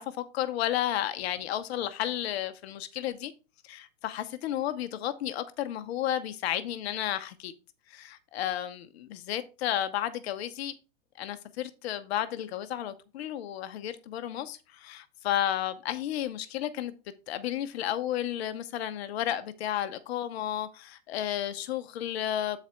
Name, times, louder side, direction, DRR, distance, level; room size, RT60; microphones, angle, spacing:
voice 1, 0.0-3.3 3.6-7.5 7.9-10.7 11.2-16.9 17.3-22.6, left 11 dB, 55° left, 0.7 m, -32 dB
8.6 x 4.1 x 4.3 m
hypercardioid pair, 125°, 39 cm